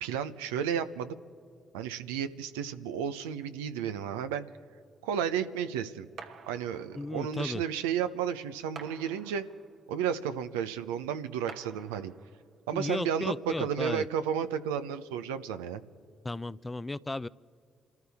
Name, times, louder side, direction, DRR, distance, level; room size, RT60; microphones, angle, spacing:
voice 1, 0.0-1.1 1.7-4.4 5.0-6.1 6.5-9.4 9.9-12.1 12.7-15.8, right 8 dB, 85° right, 9 dB, 0.6 m, -32 dB
sound 1, 6.2-7.3 8.7-9.9 11.5-12.5, right 5 dB, 65° right, 1.3 m, -49 dB
voice 2, 7.0-7.6 12.7-14.1 16.2-17.3, left 2 dB, 20° left, 18 dB, 0.5 m, -35 dB
28.0 x 14.0 x 3.5 m, 2.4 s
hypercardioid pair, 45°, 0 cm